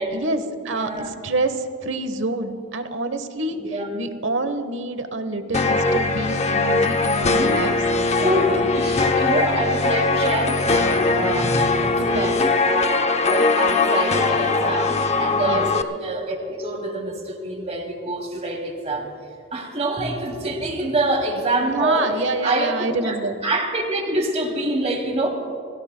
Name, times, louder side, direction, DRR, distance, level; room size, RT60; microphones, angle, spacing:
voice 1, 0.1-8.7 12.0-12.3 15.4-15.6 21.6-23.4, right 2 dB, 70° right, 9 dB, 1.1 m, -27 dB
voice 2, 0.6-1.1 3.5-3.9 7.2-7.6 8.2-8.5 8.7-19.1 19.5-22.1 22.4-23.2 23.4-25.3, right 2 dB, 35° right, 1 dB, 2.7 m, -26 dB
sound 1, 5.5-15.8, left 3 dB, 35° left, 0.7 m, -20 dB
30.0 x 16.5 x 2.2 m, 2.4 s
head